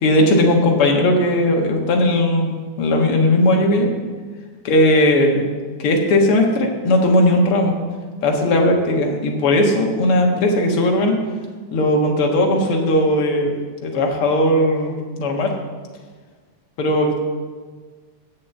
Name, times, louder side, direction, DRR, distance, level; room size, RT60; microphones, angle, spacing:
voice 1, 0.0-3.9 4.6-5.5 5.8-7.8 8.2-11.2 11.7-13.5 13.8-15.5 16.8-17.2, left 1 dB, 55° left, 1 dB, 2.0 m, -17 dB
7.6 x 7.2 x 8.1 m, 1.5 s
omnidirectional pair, 3.5 m